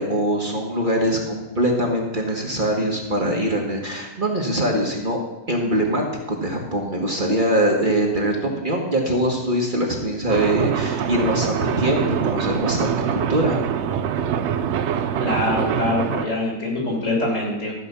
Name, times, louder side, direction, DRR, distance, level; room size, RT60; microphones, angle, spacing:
voice 1, 0.0-5.2 5.5-13.6, right 1 dB, 35° right, 0 dB, 1.5 m, -23 dB
sound 1, 10.3-16.3, right 8 dB, 60° right, 0.8 m, -24 dB
voice 2, 15.2-17.7, left 2 dB, 55° left, -2 dB, 3.7 m, -24 dB
13.0 x 5.2 x 6.7 m, 1.1 s
omnidirectional pair, 1.5 m